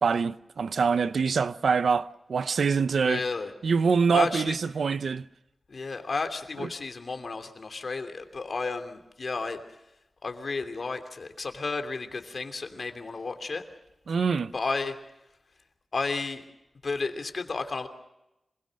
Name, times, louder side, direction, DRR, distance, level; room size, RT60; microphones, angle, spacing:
voice 1, 0.0-3.2 3.6-5.3 6.6-6.7 14.1-14.5, right 5 dB, 85° right, 0.7 m, -25 dB
voice 2, 3.0-3.5 4.1-4.6 5.7-9.8 10.2-13.7 14.5-15.0 15.9-16.4 16.8-17.9, left 4 dB, 60° left, 2.9 m, -32 dB
27.0 x 21.0 x 6.4 m
wide cardioid pair, 75°, 0 cm